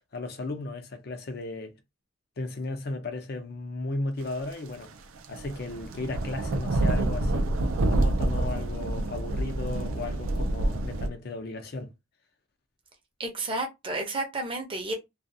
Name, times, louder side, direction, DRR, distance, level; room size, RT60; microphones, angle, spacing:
voice 1, 0.0-1.8 2.4-4.9 5.3-11.9, left 2 dB, 50° left, 0.5 m, -35 dB
sound 1, 4.7-4.9 5.2-11.1, right 1 dB, 80° right, 0.4 m, -27 dB
voice 2, 13.2-14.9, right 2 dB, 25° right, 0.6 m, -31 dB
2.4 x 2.3 x 2.6 m
head